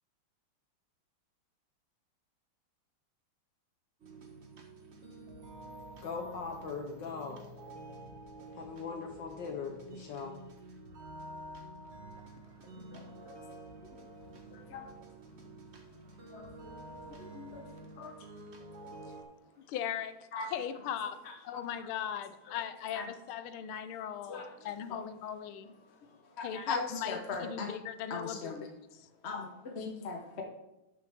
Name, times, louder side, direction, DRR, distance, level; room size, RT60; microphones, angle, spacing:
sound 1, 4.0-19.2, right 1 dB, 40° right, 1.1 m, -49 dB
voice 1, 6.0-7.4 8.6-10.3, left 5 dB, 65° left, 4 dB, 1.4 m, -40 dB
voice 2, 14.5-14.8 16.3-16.5 17.1-17.6 18.0-18.1 20.3-20.5 21.5-21.6 22.9-23.0 24.3-25.0 26.4-27.7 28.1-28.7 29.2-30.4, left 4 dB, 45° left, 2 dB, 0.9 m, -39 dB
voice 3, 19.7-20.2 20.5-21.2 21.4-25.7 26.4-28.5 28.9-29.1, left 9 dB, 85° left, 11 dB, 1.5 m, -38 dB
12.0 x 6.4 x 3.5 m, 0.93 s
omnidirectional pair, 2.3 m